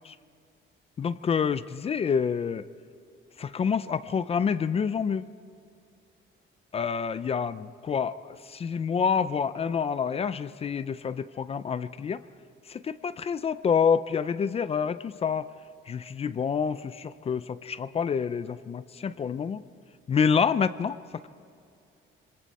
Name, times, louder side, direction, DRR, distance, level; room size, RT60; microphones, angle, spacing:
voice 1, 1.0-2.7 3.4-5.3 6.7-12.2 12.7-15.5 15.9-19.6 20.1-21.0, left 6 dB, 30° left, 14 dB, 0.4 m, -27 dB
26.0 x 25.0 x 4.2 m, 2.4 s
cardioid pair, 175°, 21 cm